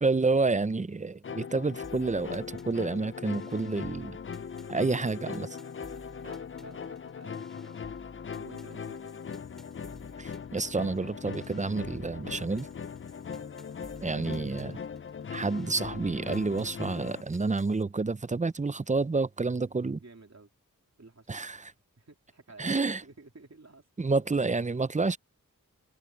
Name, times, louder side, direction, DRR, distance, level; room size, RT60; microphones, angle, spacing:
voice 1, 0.0-4.2 4.7-5.6 10.2-12.7 14.0-14.8 15.3-20.0 21.3-21.7 22.6-23.0 24.0-25.2, right 3 dB, 20° right, 0.5 m, -29 dB
sound 1, 1.2-17.2, left 6 dB, 40° left, 0.4 m, -40 dB
sound 2, 1.8-17.8, equal, ahead, 5.2 m, -55 dB
voice 2, 6.2-7.9 8.4-9.1 13.3-13.5 20.0-20.5 21.0-21.4 22.0-22.7 23.0-23.9, right 3 dB, 50° right, 3.4 m, -52 dB
wide cardioid pair, 70°, 34 cm